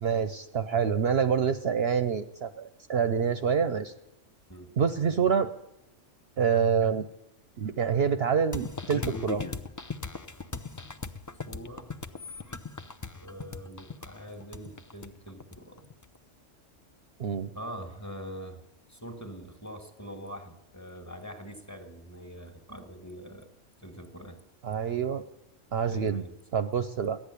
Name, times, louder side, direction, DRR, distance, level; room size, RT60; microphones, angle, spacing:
voice 1, 0.0-3.9 4.8-5.5 6.4-7.0 7.6-9.5 17.2-17.5 24.6-25.2 25.7-26.2 26.5-27.2, right 7 dB, 60° right, 10 dB, 0.8 m, -26 dB
sound 1, 8.5-16.1, left 4 dB, 30° left, 0.3 m, -38 dB
voice 2, 11.5-11.9 13.2-15.9 17.5-18.6 18.9-23.5 23.8-24.4 25.8-26.3, equal, 15° left, 6 dB, 1.6 m, -43 dB
15.0 x 10.0 x 8.2 m, 0.92 s
omnidirectional pair, 1.3 m